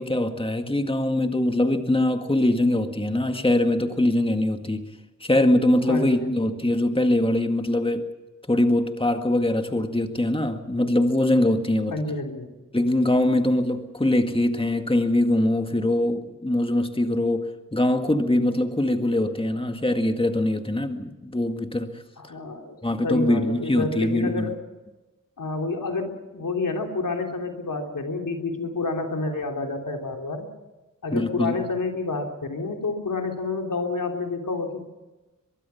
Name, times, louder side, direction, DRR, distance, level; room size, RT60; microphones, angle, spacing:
voice 1, 0.0-4.9 5.2-8.1 8.5-11.9 12.7-22.0 22.8-24.5 31.1-31.6, left 1 dB, 15° left, 6 dB, 1.9 m, -23 dB
voice 2, 5.9-6.7 11.9-12.5 22.2-22.8 23.0-24.6 25.4-30.5 31.0-34.9, left 3 dB, 85° left, 3 dB, 3.2 m, -29 dB
23.0 x 22.5 x 5.8 m, 1.1 s
wide cardioid pair, 55°, 32 cm